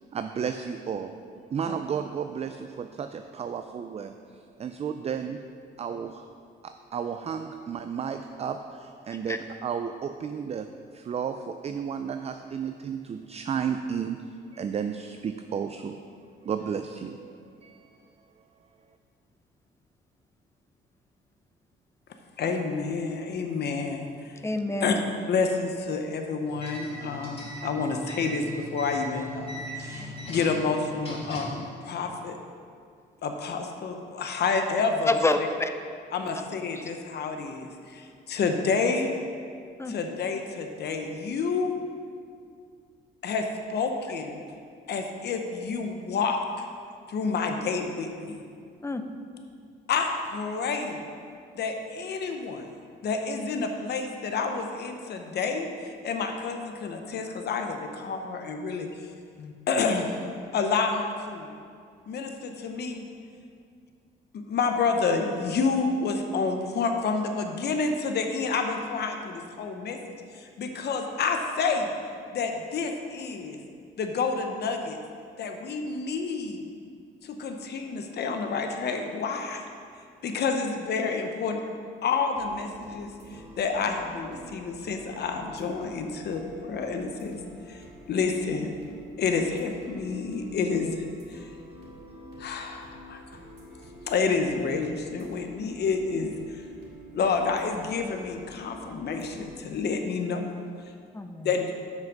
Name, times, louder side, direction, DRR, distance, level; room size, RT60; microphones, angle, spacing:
voice 1, 0.1-5.4 5.8-6.2 6.6-10.7 10.9-16.0 16.4-17.8, right 7 dB, 35° right, 7 dB, 0.3 m, -33 dB
voice 2, 22.4-24.4 24.8-25.0 25.3-32.4 33.2-35.1 36.1-39.1 39.9-41.8 43.2-44.4 44.9-46.7 47.1-48.4 49.9-51.0 51.5-52.7 53.0-58.9 59.4-60.3 60.5-61.5 62.1-63.1 64.3-70.0 70.3-71.9 72.3-73.6 74.0-75.0 75.4-76.7 77.2-79.6 80.2-81.6 82.0-87.4 87.7-88.7 89.2-91.5 92.4-93.2 94.1-96.6 97.1-100.5 101.4-101.7, left 4 dB, 55° left, 5 dB, 0.8 m, -29 dB
voice 3, 24.4-25.1 35.1-35.7 39.8-39.9 48.8-49.0 101.1-101.5, left 2 dB, 15° left, 7 dB, 0.6 m, -27 dB
sound 1, 26.5-31.6, equal, 30° left, 2.3 m, -39 dB
sound 2, 82.3-99.5, equal, 55° right, 1.9 m, -47 dB
7.6 x 6.0 x 5.2 m, 2.3 s
cardioid pair, 90°, 20 cm